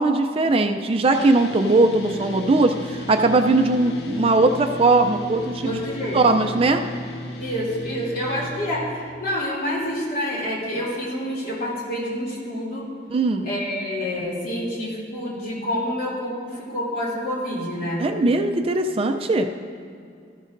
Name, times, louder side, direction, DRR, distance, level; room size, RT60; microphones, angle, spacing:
voice 1, 0.0-5.8 6.1-6.8 13.1-13.4 18.0-19.5, right 2 dB, 35° right, 6 dB, 0.4 m, -19 dB
sound 1, 1.1-8.7, left 2 dB, 70° left, 0.9 m, -35 dB
voice 2, 5.6-6.5 7.4-12.9 13.4-18.0, equal, 55° left, -5 dB, 2.7 m, -28 dB
14.0 x 11.5 x 2.6 m, 2.4 s
head